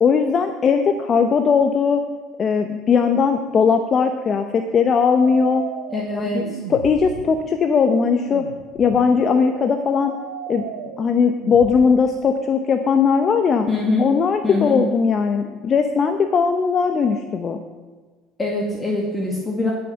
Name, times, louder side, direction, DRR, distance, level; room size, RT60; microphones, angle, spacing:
voice 1, 0.0-2.0 2.4-5.6 6.1-6.4 6.7-8.5 8.8-10.1 10.5-10.6 11.0-13.7 14.0-17.6, left 6 dB, 40° left, 7 dB, 0.9 m, -19 dB
sound 1, 5.2-11.8, right 8 dB, 85° right, 0.9 m, -35 dB
voice 2, 5.9-6.4 13.7-14.1 14.4-14.8 18.4-19.7, left 3 dB, 25° left, -1 dB, 2.2 m, -23 dB
17.5 x 6.6 x 5.9 m, 1.4 s
hypercardioid pair, 70°, 0 cm